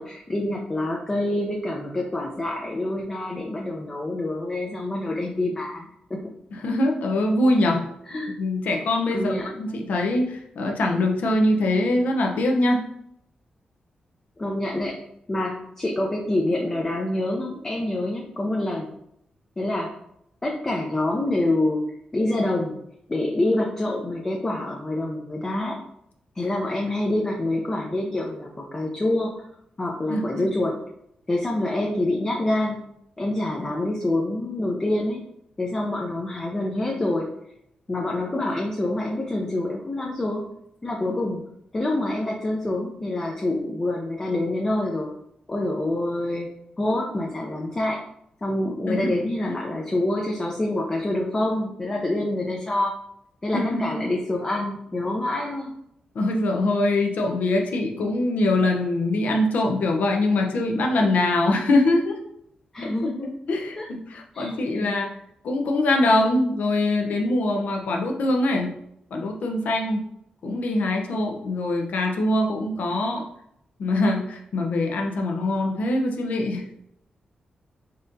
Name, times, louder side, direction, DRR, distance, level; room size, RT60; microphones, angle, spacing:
voice 1, 0.0-6.2 8.1-8.3 9.1-9.7 14.4-15.0 15.3-18.9 19.6-19.9 20.4-21.8 22.1-22.8 23.1-25.8 26.4-29.4 29.8-30.8 31.3-32.8 33.2-35.2 35.6-37.3 37.9-40.5 40.8-41.4 41.7-45.1 45.5-46.5 46.8-48.0 48.4-52.9 53.4-55.7 62.7-63.3 63.8-63.9 64.3-65.0, left 1 dB, 20° left, -1 dB, 0.5 m, -26 dB
voice 2, 6.6-7.9 8.4-12.8 30.1-30.5 48.9-49.0 53.5-54.0 56.1-62.2 62.8-63.1 63.5-65.1 65.4-68.7 69.1-70.0 70.4-73.3 73.8-76.9, left 2 dB, 80° left, 1 dB, 0.7 m, -23 dB
4.1 x 3.7 x 2.6 m, 0.74 s
wide cardioid pair, 120°, 3 cm